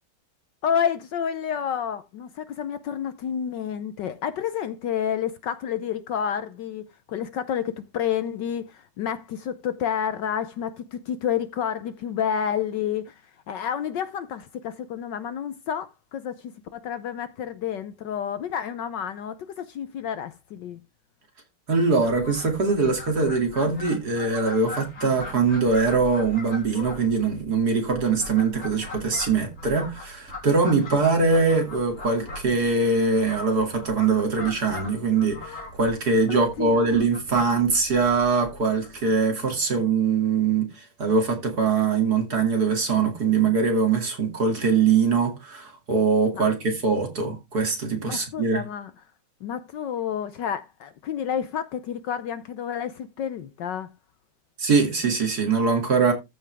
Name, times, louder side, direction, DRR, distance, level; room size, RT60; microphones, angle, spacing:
voice 1, 0.6-13.1 13.5-20.8 36.3-36.8 46.3-46.4 48.0-48.9 49.4-53.9, left 8 dB, 70° left, 1.2 m, -30 dB
voice 2, 21.7-48.6 54.6-56.1, right 4 dB, 45° right, 3.0 m, -22 dB
Fowl, 22.0-39.3, left 2 dB, 40° left, 3.6 m, -41 dB
14.0 x 5.6 x 3.4 m
omnidirectional pair, 2.3 m